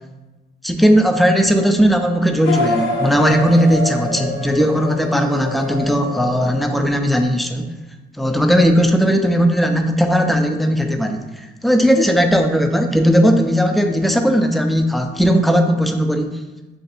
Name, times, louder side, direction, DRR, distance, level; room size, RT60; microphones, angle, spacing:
voice 1, 0.6-7.7 8.2-16.4, equal, ahead, 5 dB, 0.3 m, -17 dB
sound 1, 2.4-7.2, left 2 dB, 70° left, 0.6 m, -26 dB
3.2 x 2.5 x 4.1 m, 1.1 s
cardioid pair, 90°, 20 cm